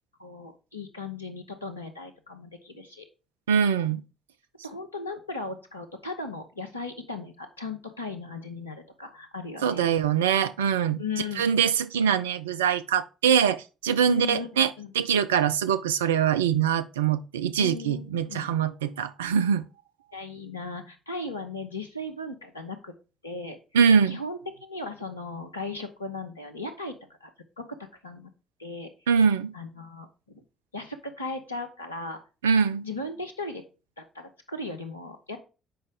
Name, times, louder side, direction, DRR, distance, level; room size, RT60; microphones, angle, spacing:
voice 1, 0.2-3.1 4.6-9.9 11.0-11.5 14.0-14.9 17.6-18.5 20.1-22.9 23.2-23.6 24.1-27.0 27.2-27.3 27.6-28.3 28.6-28.9 29.5-30.1 30.3-30.4 30.7-32.2 32.8-33.6 34.0-35.4, left 3 dB, 85° left, 0.9 m, -37 dB
voice 2, 3.5-4.0 9.6-11.0 11.4-14.7 14.9-19.6 23.7-24.2 29.1-29.5 32.4-32.8, right 7 dB, 75° right, 0.4 m, -23 dB
7.8 x 5.3 x 5.0 m
figure-of-eight pair, 45°, 0 cm